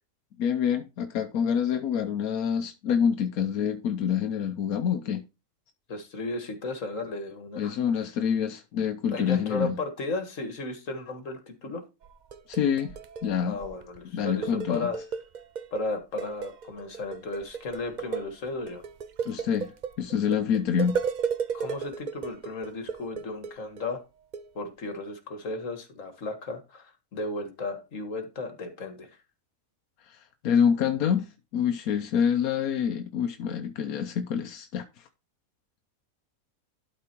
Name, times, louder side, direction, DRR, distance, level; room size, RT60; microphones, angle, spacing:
voice 1, 0.4-5.2 7.6-9.8 12.5-12.9 13.2-13.6 14.1-14.9 19.2-19.7 20.0-21.0 30.1-30.2 30.4-35.0, left 8 dB, 90° left, 1.2 m, -26 dB
voice 2, 5.9-7.8 8.0-8.1 9.1-11.8 13.5-15.0 15.7-18.8 21.5-24.0 24.6-29.2, left 3 dB, 65° left, 2.0 m, -34 dB
sound 1, 12.0-14.0 14.2-15.9 16.2-23.9 24.3-24.5, right 6 dB, 55° right, 0.5 m, -34 dB
12.0 x 4.3 x 4.5 m
omnidirectional pair, 1.5 m